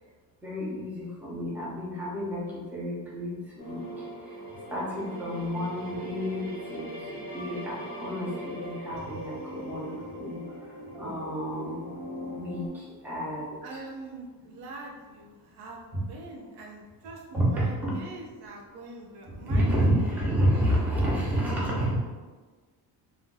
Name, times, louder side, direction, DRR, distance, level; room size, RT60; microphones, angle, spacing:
voice 1, 0.4-3.8 4.7-10.4 10.9-11.8 12.2-13.8 15.9-16.0 17.3-17.9 19.4-22.0, equal, 5° right, -7 dB, 0.7 m, -30 dB
sound 1, 3.6-12.7, right 1 dB, 40° right, 1.2 m, -40 dB
voice 2, 13.6-19.8 20.6-21.8, right 2 dB, 85° right, -1 dB, 0.7 m, -44 dB
2.5 x 2.2 x 3.8 m, 1.4 s
cardioid pair, 150°, 37 cm